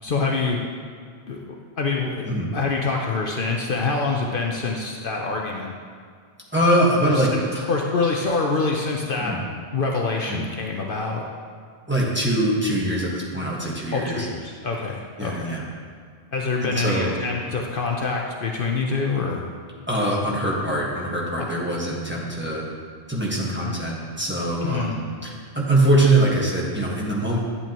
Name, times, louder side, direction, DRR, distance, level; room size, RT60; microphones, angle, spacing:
voice 1, 0.0-0.6 1.3-2.3 2.5-5.7 7.0-7.4 7.7-9.3 9.7-11.2 13.9-15.5 16.3-19.5 21.4-21.5 23.6-23.8 24.6-25.0, left 4 dB, 55° left, 0 dB, 0.9 m, -25 dB
voice 2, 6.5-7.6 9.2-9.4 10.3-10.4 11.9-14.3 15.2-15.7 16.6-17.1 19.9-22.6 23.1-27.4, right 1 dB, 10° right, -5 dB, 1.4 m, -23 dB
11.0 x 8.3 x 3.0 m, 2.1 s
omnidirectional pair, 1.1 m